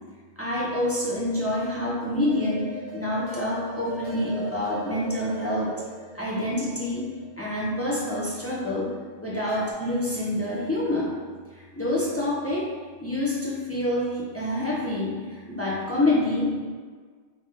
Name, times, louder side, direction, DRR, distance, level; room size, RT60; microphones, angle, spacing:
voice 1, 0.4-5.7 6.1-7.1 7.4-8.9 9.2-11.1 11.5-12.7 13.0-16.6, left 1 dB, 20° left, -7 dB, 0.5 m, -27 dB
sound 1, 2.3-8.3 9.5-9.7, equal, 50° left, 1.4 m, -40 dB
3.2 x 2.9 x 3.3 m, 1.6 s
omnidirectional pair, 1.2 m